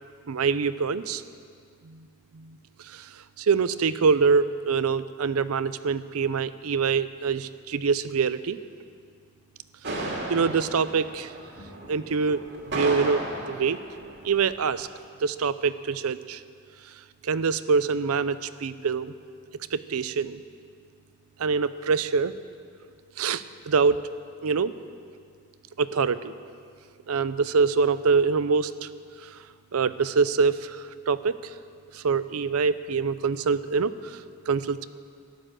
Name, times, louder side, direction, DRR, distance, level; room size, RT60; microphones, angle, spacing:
voice 1, 0.3-1.2 2.4-2.5 2.9-3.0 3.4-8.6 10.3-11.3 11.9-12.4 12.7-13.8 14.2-14.9 15.2-16.4 17.2-19.1 19.7-20.4 21.4-22.3 23.2-24.0 24.4-24.7 25.8-26.3 27.1-28.9 29.7-30.7 31.1-31.3 31.9-33.9 34.5-34.9, right 5 dB, 85° right, 14 dB, 0.6 m, -24 dB
sound 1, 9.8-14.8, right 2 dB, 55° right, 2.4 m, -35 dB
14.0 x 11.5 x 7.6 m, 2.2 s
head